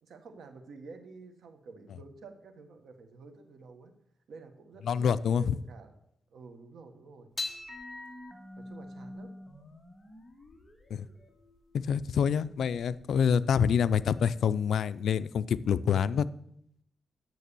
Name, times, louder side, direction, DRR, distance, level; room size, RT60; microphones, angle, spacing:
voice 1, 0.0-3.9 4.3-5.1 5.4-5.9 6.3-7.3 8.6-9.3, right 4 dB, 75° right, 7 dB, 1.4 m, -50 dB
voice 2, 4.9-5.6 10.9-11.1 11.7-16.3, left 7 dB, 75° left, 16 dB, 0.4 m, -26 dB
sound 1, 7.3-13.9, left 2 dB, 15° left, 1.8 m, -44 dB
9.2 x 6.7 x 6.9 m, 0.74 s
wide cardioid pair, 130°, 0 cm